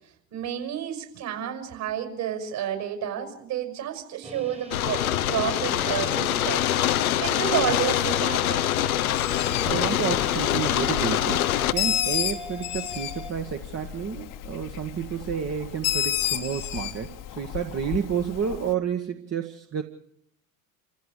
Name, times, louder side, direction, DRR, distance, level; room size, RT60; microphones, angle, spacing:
voice 1, 0.3-5.0 5.3-6.6 7.2-8.7, right 10 dB, 55° right, 6 dB, 6.1 m, -30 dB
sound 1, 4.2-13.3, equal, 15° right, 2.1 m, -40 dB
sound 2, 4.7-11.7, left 13 dB, 75° left, 0.9 m, -24 dB
Bird, 9.1-18.7, left 11 dB, 45° left, 1.4 m, -32 dB
voice 2, 9.7-19.8, right 8 dB, 35° right, 4 dB, 1.7 m, -30 dB
28.0 x 15.5 x 6.7 m, 0.76 s
figure-of-eight pair, 65°, 43 cm